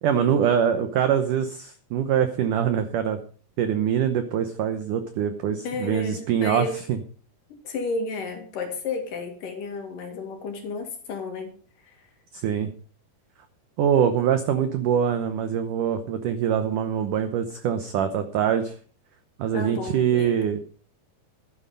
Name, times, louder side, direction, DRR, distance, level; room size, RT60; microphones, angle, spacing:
voice 1, 0.0-3.2 3.6-7.0 12.3-12.7 13.8-18.7 19.4-20.6, right 8 dB, 75° right, 9 dB, 1.9 m, -24 dB
voice 2, 5.6-6.8 7.6-11.5 11.8-11.9 19.5-20.4, left 4 dB, 55° left, 4 dB, 3.2 m, -32 dB
13.0 x 10.0 x 5.3 m, 0.44 s
omnidirectional pair, 4.9 m